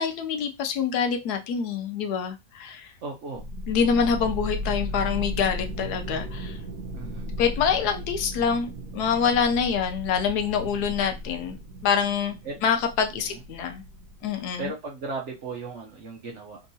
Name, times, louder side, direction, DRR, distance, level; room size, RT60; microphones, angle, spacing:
voice 1, 0.0-2.9 3.7-6.6 7.4-11.6 11.8-12.3 12.6-13.8 14.2-14.7, left 6 dB, 75° left, 1.1 m, -26 dB
voice 2, 3.0-3.4 6.9-7.3 12.4-12.6 13.1-13.4 14.3-16.6, right 3 dB, 60° right, 0.8 m, -36 dB
sound 1, 3.3-14.7, left 1 dB, 85° right, 1.3 m, -35 dB
3.5 x 2.9 x 2.7 m
omnidirectional pair, 1.7 m